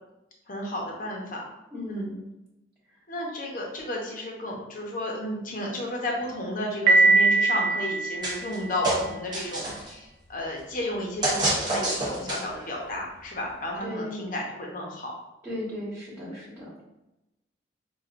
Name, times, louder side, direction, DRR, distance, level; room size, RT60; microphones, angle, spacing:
voice 1, 0.5-1.4 1.9-2.1 3.1-15.1, left 1 dB, 50° left, -1 dB, 0.8 m, -33 dB
voice 2, 1.7-2.3 13.8-14.3 15.4-16.7, left 1 dB, 5° right, -11 dB, 1.4 m, -36 dB
Piano, 6.9-8.8, right 3 dB, 50° right, 0.5 m, -21 dB
sound 1, 8.2-8.6 8.8-9.9 11.2-12.6, right 2 dB, 25° right, 1.0 m, -27 dB
5.8 x 2.4 x 2.5 m, 0.94 s
head